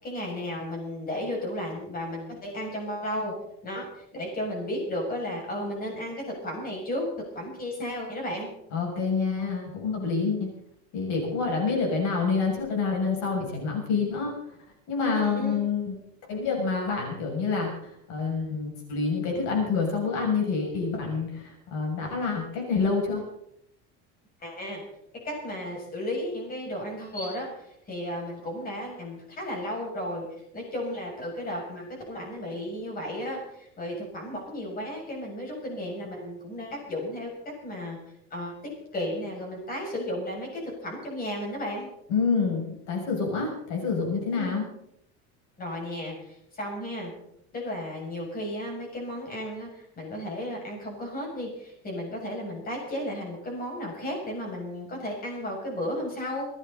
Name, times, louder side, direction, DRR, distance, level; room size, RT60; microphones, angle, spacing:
voice 1, 0.0-3.3 3.6-8.5 15.0-15.6 24.4-24.8 25.2-30.3 30.5-37.3 37.6-38.0 38.3-38.5 38.9-41.9 44.4-44.6 45.6-47.1 47.5-56.5, left 1 dB, 25° left, 0 dB, 6.9 m, -34 dB
voice 2, 8.7-10.5 10.9-14.3 14.9-15.9 16.3-17.7 18.1-23.2 42.1-44.7, left 4 dB, 60° left, 1 dB, 7.0 m, -27 dB
27.0 x 11.0 x 4.1 m, 0.75 s
cardioid pair, 150°, 33 cm